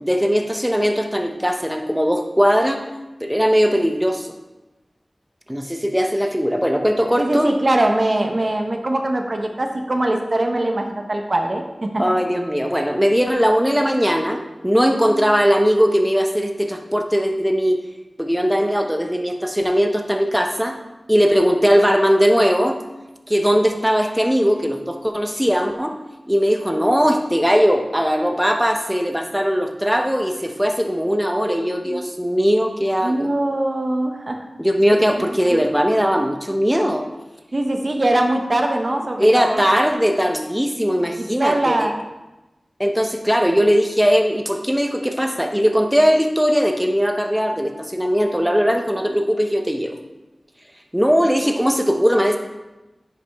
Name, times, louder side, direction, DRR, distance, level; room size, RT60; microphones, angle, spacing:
voice 1, 0.0-2.9 3.2-4.3 5.5-7.5 12.0-17.8 18.2-20.8 21.1-22.8 23.3-25.9 26.3-33.3 34.6-37.0 39.2-41.9 42.8-49.9 50.9-52.4, equal, 5° right, 4 dB, 0.8 m, -19 dB
voice 2, 7.2-12.1 31.4-32.0 33.0-34.4 35.2-35.6 37.5-39.6 41.2-41.9, right 1 dB, 55° right, 3 dB, 0.9 m, -22 dB
10.0 x 5.0 x 3.5 m, 1.0 s
cardioid pair, 40°, 0 cm